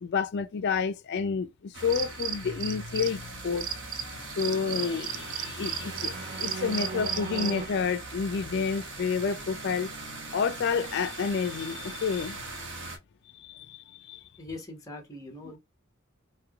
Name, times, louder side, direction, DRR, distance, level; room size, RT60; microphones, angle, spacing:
voice 1, 0.0-3.7 4.4-6.1 6.4-9.9 10.3-12.4 13.4-13.8 14.1-14.2 15.4-15.5, left 5 dB, 55° left, 0.4 m, -29 dB
sound 1, 1.7-13.0, right 2 dB, 60° right, 1.0 m, -40 dB
sound 2, 1.9-3.2 3.6-7.7, right 7 dB, 40° right, 0.3 m, -34 dB
voice 2, 14.4-15.6, left 2 dB, 15° left, 1.0 m, -41 dB
3.3 x 2.8 x 2.3 m
head